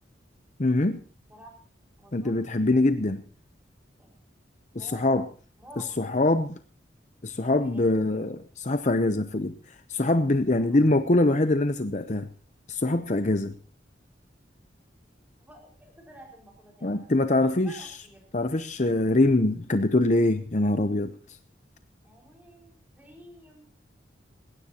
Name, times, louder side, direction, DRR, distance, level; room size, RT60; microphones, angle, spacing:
voice 1, 0.6-1.0 2.1-3.2 4.7-5.2 6.0-6.6 7.2-9.5 9.9-12.3 12.7-13.5 16.8-18.0 18.3-21.1, left 2 dB, 40° left, 9 dB, 0.7 m, -23 dB
voice 2, 2.0-2.3 4.0-4.1 4.7-5.3 5.6-5.9 7.6-7.9 10.6-10.8 15.4-17.1 17.6-18.2 22.0-23.7, right 1 dB, 10° right, 0 dB, 5.3 m, -50 dB
20.0 x 17.0 x 2.9 m, 0.39 s
head